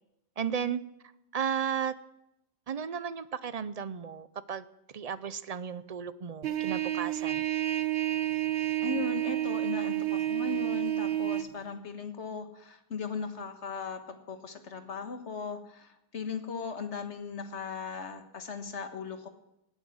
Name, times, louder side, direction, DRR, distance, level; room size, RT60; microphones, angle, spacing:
voice 1, 0.4-0.8 1.3-1.9 2.7-4.6 4.9-7.5, right 7 dB, 45° right, 15 dB, 0.6 m, -34 dB
Trumpet, 6.4-11.5, right 14 dB, 65° right, 1.0 m, -30 dB
voice 2, 8.8-19.3, left 5 dB, 85° left, 7 dB, 1.7 m, -38 dB
18.5 x 9.0 x 6.4 m, 0.86 s
omnidirectional pair, 1.1 m